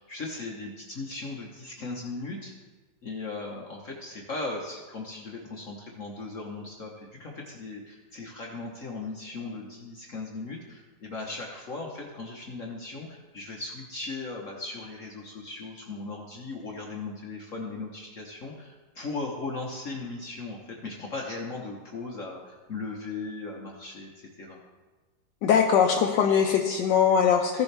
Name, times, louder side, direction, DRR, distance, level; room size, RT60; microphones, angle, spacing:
voice 1, 0.0-2.5 3.0-24.1 24.4-24.6, left 3 dB, 50° left, -1 dB, 1.3 m, -37 dB
voice 2, 25.4-27.6, left 7 dB, 75° left, 1 dB, 1.3 m, -21 dB
15.5 x 7.0 x 3.3 m, 1.3 s
omnidirectional pair, 2.0 m